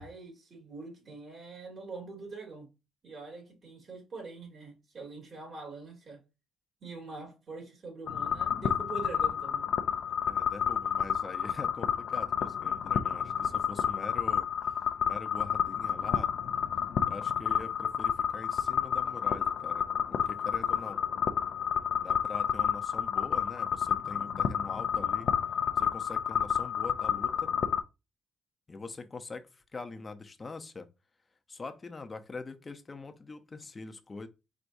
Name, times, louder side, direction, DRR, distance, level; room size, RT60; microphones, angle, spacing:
voice 1, 0.0-2.7 3.0-6.2 6.8-9.7, right 3 dB, 50° right, 2.8 m, -44 dB
sound 1, 8.1-27.8, left 8 dB, 70° left, 0.5 m, -30 dB
voice 2, 10.2-14.5 15.0-16.3 17.0-19.9 20.1-21.0 22.0-25.3 25.8-27.5 28.7-30.9 31.5-34.3, left 3 dB, 30° left, 0.7 m, -43 dB
4.7 x 4.1 x 2.6 m
cardioid pair, 90°, 0 cm